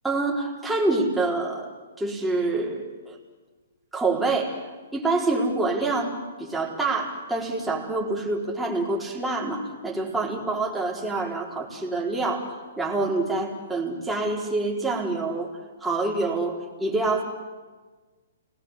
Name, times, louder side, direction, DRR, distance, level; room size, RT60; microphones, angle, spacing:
voice 1, 0.0-1.7 2.0-3.2 3.9-15.5 15.8-17.2, right 3 dB, 5° right, -3 dB, 4.3 m, -26 dB
30.0 x 20.0 x 8.4 m, 1.4 s
hypercardioid pair, 135°, 0 cm